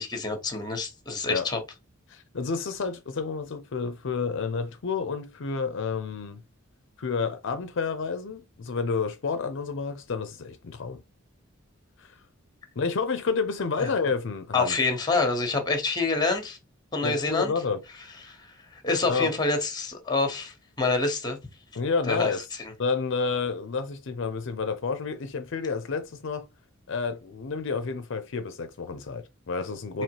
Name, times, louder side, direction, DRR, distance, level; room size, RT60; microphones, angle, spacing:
voice 1, 0.0-1.6 13.8-13.9 14.5-16.6 16.9-17.5 18.2-21.4 22.1-22.3 29.9-30.0, left 3 dB, 20° left, 1.1 m, -27 dB
voice 2, 2.1-6.4 7.0-11.0 12.0-12.2 12.8-14.8 17.0-17.8 19.1-19.3 21.7-22.4 22.8-26.5 26.9-30.0, left 5 dB, 65° left, 0.5 m, -30 dB
4.4 x 3.0 x 2.9 m
head